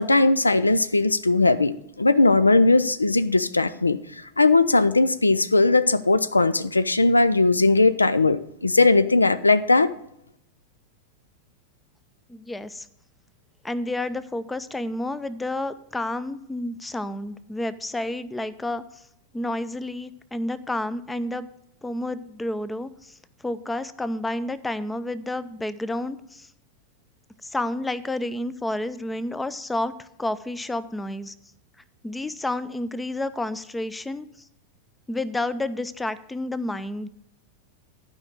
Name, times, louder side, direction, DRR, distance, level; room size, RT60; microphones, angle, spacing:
voice 1, 0.0-4.0 4.4-9.9, left 3 dB, 80° left, 15 dB, 0.4 m, -19 dB
voice 2, 12.3-12.9 13.6-19.0 19.3-21.5 21.8-23.1 23.4-26.5 27.4-31.3 32.0-34.3 35.1-37.1, left 1 dB, 10° left, 15 dB, 0.5 m, -30 dB
12.0 x 5.2 x 6.1 m, 0.77 s
figure-of-eight pair, 90°, 0 cm